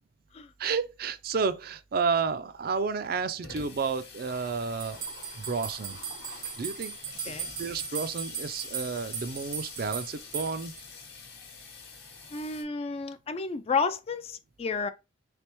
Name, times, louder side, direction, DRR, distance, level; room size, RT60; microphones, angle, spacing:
voice 1, 0.6-5.0 5.4-6.0 6.6-7.0 7.2-7.3 7.6-10.7, right 5 dB, 50° right, 0.4 m, -31 dB
Water tap faucet / Sink (filling or washing), 2.0-2.1 2.4-2.5 2.7-12.6, left 5 dB, 60° left, 1.0 m, -46 dB
sound 1, 4.8-10.8, right 7 dB, 90° right, 1.0 m, -38 dB
voice 2, 12.3-14.9, left 4 dB, 30° left, 0.3 m, -31 dB
3.4 x 3.3 x 2.9 m
head